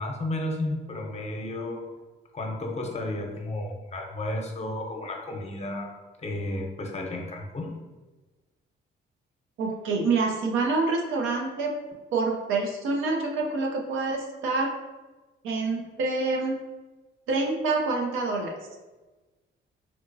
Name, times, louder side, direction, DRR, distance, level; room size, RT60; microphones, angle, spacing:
voice 1, 0.0-1.9 2.3-5.9 6.2-7.7, left 1 dB, 35° left, 1 dB, 0.7 m, -32 dB
voice 2, 9.6-11.7 12.1-14.7 15.4-16.6 17.3-18.6, right 3 dB, 90° right, 0 dB, 0.6 m, -26 dB
3.4 x 2.9 x 2.6 m, 1.2 s
cardioid pair, 90°, 20 cm